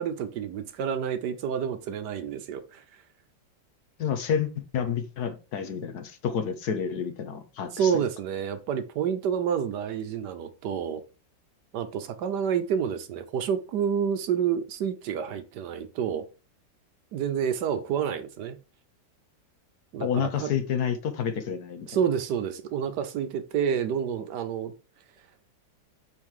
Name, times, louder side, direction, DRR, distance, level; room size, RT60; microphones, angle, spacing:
voice 1, 0.0-3.0 7.7-11.0 11.7-16.3 17.1-18.6 19.9-20.5 21.9-24.7, right 8 dB, 70° right, 1.2 m, -29 dB
voice 2, 4.0-7.9 20.0-21.9, left 7 dB, 65° left, 1.3 m, -29 dB
5.5 x 4.5 x 4.7 m
omnidirectional pair, 2.0 m